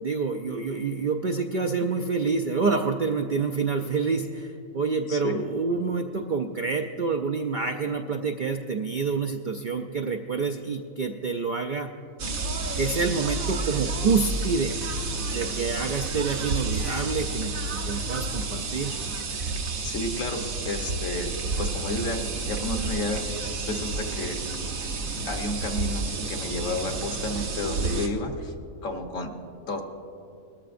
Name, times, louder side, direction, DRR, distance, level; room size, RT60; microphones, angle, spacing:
voice 1, 0.0-11.9 12.8-14.7 15.3-19.0, right 4 dB, 65° right, 4 dB, 0.4 m, -27 dB
voice 2, 5.1-5.4 19.8-24.4 25.2-28.5 28.8-29.3 29.6-29.8, left 2 dB, 70° left, 4 dB, 1.5 m, -31 dB
sound 1, 12.2-28.1, right 3 dB, 80° right, 1.4 m, -30 dB
20.0 x 13.5 x 2.5 m, 2.6 s
omnidirectional pair, 1.4 m